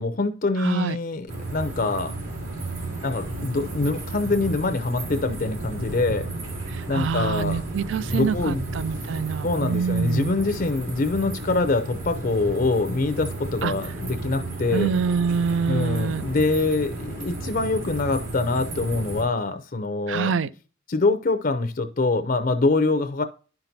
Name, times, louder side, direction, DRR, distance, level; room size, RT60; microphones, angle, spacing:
voice 1, 0.0-2.1 3.0-6.2 6.9-7.6 8.1-8.6 9.4-14.9 15.7-20.3 20.9-23.2, left 3 dB, 40° left, 0.5 m, -24 dB
voice 2, 0.6-1.0 6.7-10.3 13.6-13.7 14.7-16.2 20.1-20.5, right 6 dB, 65° right, 0.4 m, -26 dB
sound 1, 1.3-19.2, right 2 dB, 85° right, 2.6 m, -33 dB
10.5 x 5.8 x 2.7 m
head